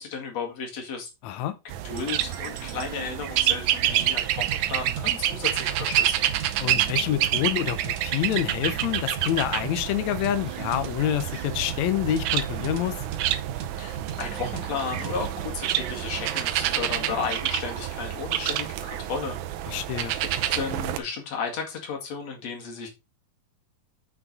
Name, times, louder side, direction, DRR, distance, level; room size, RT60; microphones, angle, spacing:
voice 1, 0.0-1.1 1.8-6.2 13.7-19.4 20.3-22.9, left 5 dB, 50° left, 2.9 m, -34 dB
voice 2, 1.2-1.6 6.6-13.0 19.7-20.2, left 11 dB, 90° left, 1.6 m, -27 dB
sound 1, 1.7-21.0, right 12 dB, 80° right, 1.8 m, -28 dB
sound 2, 2.0-17.3, right 9 dB, 60° right, 2.2 m, -39 dB
7.7 x 6.2 x 4.1 m
omnidirectional pair, 4.3 m